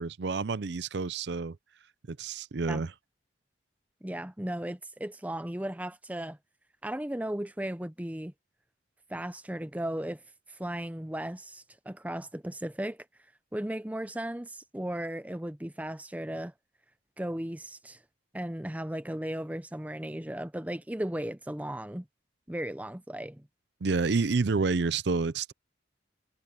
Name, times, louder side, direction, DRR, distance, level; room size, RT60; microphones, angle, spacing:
voice 1, 0.0-1.6 2.1-2.9 23.8-25.5, right 4 dB, 65° right, 0.5 m, -29 dB
voice 2, 4.0-6.4 6.8-8.3 9.1-10.2 10.5-13.1 13.5-16.5 17.2-18.0 18.3-22.1 22.5-23.4, right 1 dB, 10° right, 0.6 m, -36 dB
head